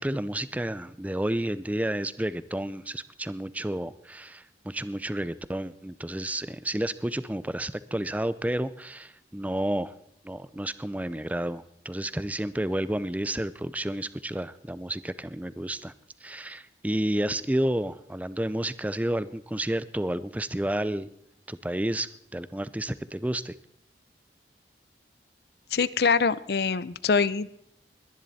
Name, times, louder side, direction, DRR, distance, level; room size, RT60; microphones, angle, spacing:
voice 1, 0.0-9.9 10.2-15.9 16.2-21.1 21.5-23.5, right 1 dB, 10° right, 16 dB, 0.4 m, -31 dB
voice 2, 25.7-27.5, left 5 dB, 65° left, 18 dB, 0.6 m, -24 dB
20.5 x 11.0 x 4.1 m, 0.76 s
head